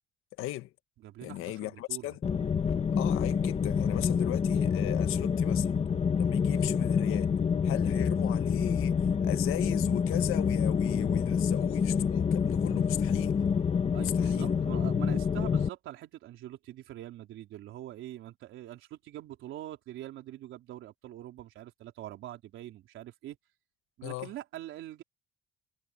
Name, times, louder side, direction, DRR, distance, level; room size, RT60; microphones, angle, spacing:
voice 1, 0.4-0.7 1.2-2.2 2.9-5.7 6.2-7.3 7.6-13.4 14.0-14.5 24.0-24.3, left 16 dB, 80° left, 1.5 m, -37 dB
voice 2, 1.0-2.1 13.9-23.4 24.0-25.0, right 13 dB, 70° right, 4.0 m, -44 dB
sound 1, 2.2-15.7, left 6 dB, 30° left, 1.5 m, -27 dB
cardioid pair, 140°, 21 cm